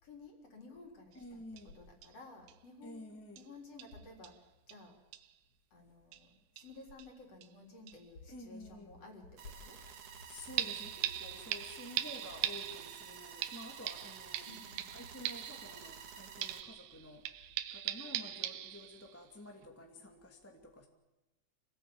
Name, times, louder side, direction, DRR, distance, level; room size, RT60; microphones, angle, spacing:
voice 1, 0.0-3.0 3.4-5.0 5.7-9.8 14.5-14.9, left 3 dB, 40° left, 2 dB, 4.7 m, -54 dB
voice 2, 1.1-1.8 2.8-3.5 8.3-9.0 10.3-14.5 14.9-17.3 17.7-20.9, left 1 dB, 5° left, 2 dB, 1.8 m, -51 dB
sound 1, 1.1-1.2 1.6-1.7 2.0-2.1 2.5-2.6 3.4-3.5 3.8-4.0 4.2-4.4 4.7-4.8 5.1-5.3 6.1-6.2 6.6-7.1 7.4-7.5 7.9-8.0 10.6-16.1 16.4-19.2 19.6-19.7, right 13 dB, 80° right, 2.8 m, -40 dB
sound 2, 9.4-16.6, right 7 dB, 55° right, 2.1 m, -51 dB
27.0 x 17.5 x 8.8 m, 1.0 s
omnidirectional pair, 4.3 m